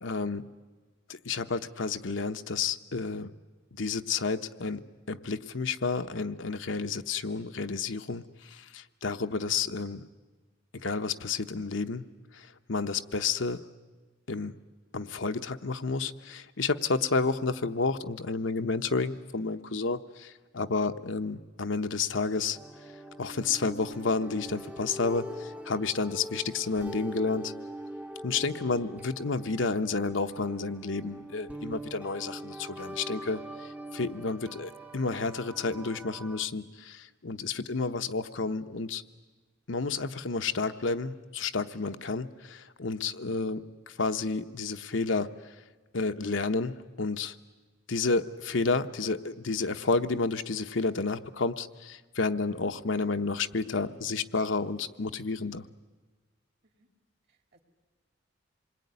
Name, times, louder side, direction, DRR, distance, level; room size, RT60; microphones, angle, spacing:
voice 1, 0.0-0.5 1.1-3.3 3.7-10.1 10.7-12.0 12.3-13.6 14.3-14.5 14.9-22.6 23.2-27.5 28.2-39.0 39.7-45.3 45.9-47.4 47.9-55.7, left 4 dB, 70° left, 8 dB, 0.9 m, -31 dB
sound 1, 22.5-36.5, equal, 5° right, 0.8 m, -43 dB
voice 2, 57.3-57.6, right 2 dB, 55° right, 5 dB, 2.8 m, -67 dB
26.5 x 21.5 x 9.6 m, 1.3 s
head